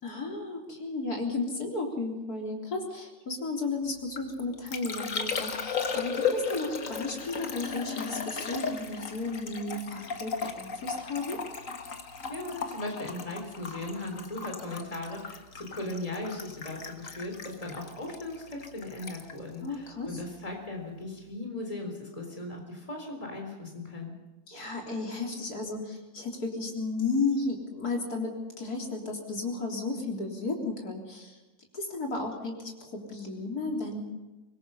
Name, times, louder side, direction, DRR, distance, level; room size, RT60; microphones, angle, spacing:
voice 1, 0.0-11.4 19.6-20.1 24.5-31.4 31.7-34.0, left 3 dB, 85° left, 1 dB, 4.0 m, -33 dB
Liquid, 3.9-20.6 20.8-21.3, left 5 dB, 60° left, 2.0 m, -36 dB
voice 2, 12.3-24.1, left 2 dB, 25° left, 1 dB, 4.0 m, -38 dB
24.5 x 21.0 x 5.7 m, 1.1 s
omnidirectional pair, 1.6 m